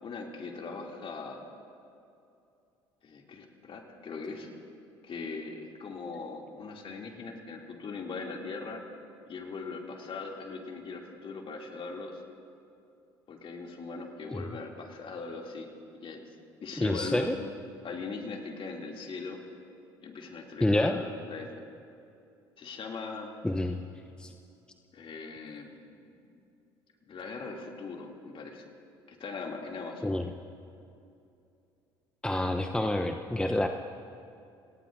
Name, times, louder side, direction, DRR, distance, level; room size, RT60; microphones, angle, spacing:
voice 1, 0.0-1.4 3.0-4.5 5.0-8.8 9.3-12.2 13.3-15.7 16.0-16.2 16.6-17.3 17.8-19.4 20.0-21.5 22.6-23.3 24.9-25.7 26.0-26.1 27.1-28.7 29.1-30.2, left 4 dB, 45° left, 1 dB, 2.7 m, -40 dB
voice 2, 16.8-17.4 20.6-21.0 23.4-23.8 24.2-24.3 30.0-30.3 32.2-33.7, left 1 dB, 5° left, 6 dB, 0.8 m, -28 dB
30.0 x 18.0 x 2.7 m, 2.6 s
hypercardioid pair, 60°, 13 cm